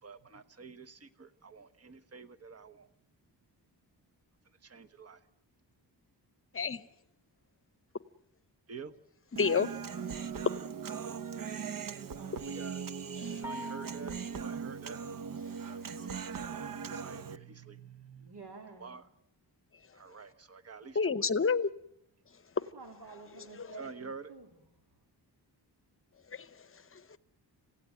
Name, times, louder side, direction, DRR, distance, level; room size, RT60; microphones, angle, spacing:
voice 1, 0.0-2.9 4.6-5.2 8.7-8.9 12.4-12.8 13.4-15.0 15.6-18.3 18.8-19.0 19.9-21.3 23.8-24.3, right 5 dB, 35° right, 1.2 m, -48 dB
voice 2, 6.5-6.9 9.4-9.7 13.2-13.4 21.0-21.7 26.3-26.5 26.9-27.0, left 5 dB, 30° left, 0.8 m, -29 dB
Human voice, 9.4-17.4, right 6 dB, 55° right, 0.9 m, -39 dB
sound 1, 13.4-14.5, left 1 dB, 5° right, 1.1 m, -44 dB
voice 3, 18.2-19.0 22.6-24.5, right 3 dB, 70° right, 2.9 m, -50 dB
27.5 x 16.5 x 9.2 m
wide cardioid pair, 160°, 41 cm